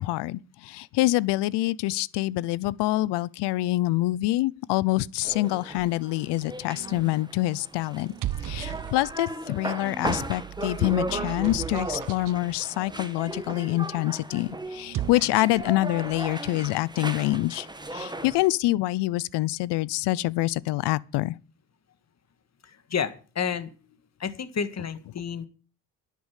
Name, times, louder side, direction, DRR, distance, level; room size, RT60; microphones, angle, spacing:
voice 1, 0.0-8.1 8.4-21.4, left 17 dB, 70° left, 0.7 m, -26 dB
sound 1, 5.2-18.5, right 2 dB, 10° right, 1.6 m, -36 dB
sound 2, 6.7-7.2 8.0-9.3 10.1-12.4 14.7-15.7, right 13 dB, 45° right, 0.7 m, -36 dB
voice 2, 22.6-23.7 24.2-25.5, left 7 dB, 35° left, 1.7 m, -30 dB
10.5 x 8.5 x 7.4 m
supercardioid pair, 70°, 43 cm